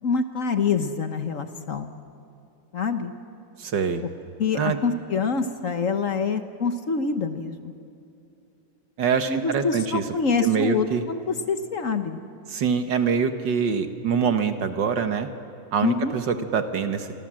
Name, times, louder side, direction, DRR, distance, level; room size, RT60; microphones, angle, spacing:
voice 1, 0.0-1.9 2.7-3.1 4.4-7.7 9.3-12.2 15.8-16.1, left 5 dB, 45° left, 8 dB, 1.2 m, -26 dB
voice 2, 3.6-4.0 4.6-4.8 9.0-10.0 10.4-11.0 12.5-15.3 15.7-17.2, right 6 dB, 60° right, 7 dB, 1.9 m, -24 dB
28.0 x 24.0 x 7.6 m, 2.6 s
omnidirectional pair, 2.3 m